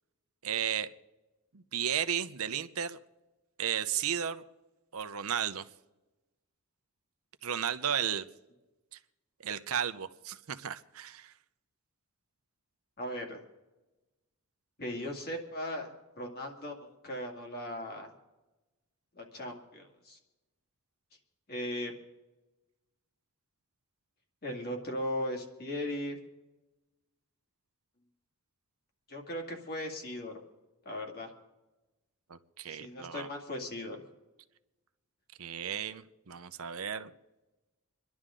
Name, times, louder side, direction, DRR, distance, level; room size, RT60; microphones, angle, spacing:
voice 1, 0.4-0.9 1.5-3.0 3.6-4.4 4.9-5.6 7.4-8.3 8.9-9.0 9.4-11.3 32.3-33.3 35.4-37.1, right 9 dB, 70° right, 11 dB, 0.7 m, -34 dB
voice 2, 13.0-13.4 14.8-18.1 19.1-20.2 21.5-21.9 24.4-26.2 29.1-30.3 30.9-31.3 32.7-34.0, left 1 dB, 45° left, 2 dB, 2.4 m, -38 dB
27.0 x 11.0 x 3.8 m, 1.1 s
head